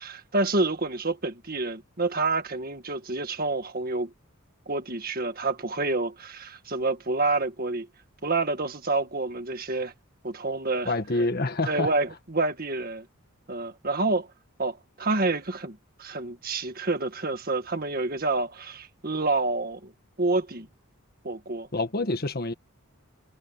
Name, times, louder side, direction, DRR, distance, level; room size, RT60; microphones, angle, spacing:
voice 1, 0.0-4.1 4.7-7.9 8.2-9.9 10.2-10.9 11.6-13.1 13.5-14.3 14.6-19.9 20.2-20.7 21.2-21.7, right 3 dB, 40° right, 1.8 m, -28 dB
voice 2, 10.8-11.9 21.7-22.5, left 2 dB, 45° left, 1.5 m, -27 dB
head